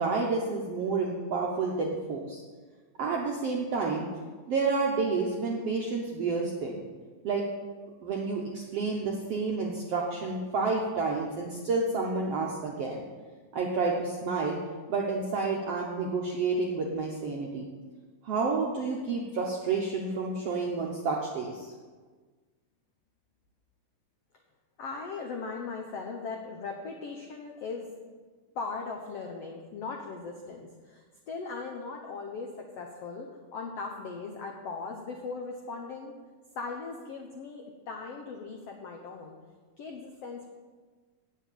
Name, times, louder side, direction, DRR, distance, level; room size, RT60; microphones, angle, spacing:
voice 1, 0.0-2.4 3.0-4.1 4.5-6.8 7.2-7.4 8.0-13.0 13.5-14.6 14.9-17.7 18.2-21.7, right 4 dB, 75° right, -2 dB, 1.4 m, -30 dB
voice 2, 24.8-27.9 28.5-36.1 36.5-39.4 39.8-40.5, left 4 dB, 90° left, 2 dB, 1.3 m, -39 dB
9.2 x 7.8 x 8.6 m, 1.4 s
omnidirectional pair, 4.3 m